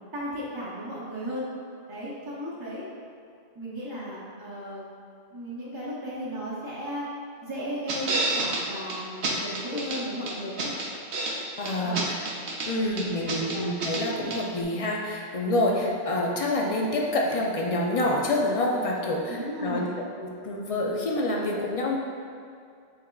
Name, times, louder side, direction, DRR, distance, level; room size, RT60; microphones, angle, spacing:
voice 1, 0.1-1.5 1.9-2.9 3.5-4.8 5.3-7.1 7.4-10.7 11.8-12.1 13.2-13.6 15.8-15.9 19.3-19.9, equal, 25° right, -10 dB, 0.7 m, -35 dB
sound 1, 7.9-8.6 8.9-9.0 9.2-10.0 10.3-11.4 11.7-12.7 13.0-14.0 14.3-14.4, right 3 dB, 70° right, 0.9 m, -29 dB
voice 2, 11.6-12.1 12.6-19.8 20.2-22.0, left 1 dB, 50° left, -1 dB, 0.4 m, -27 dB
6.5 x 3.5 x 2.3 m, 2.4 s
omnidirectional pair, 1.1 m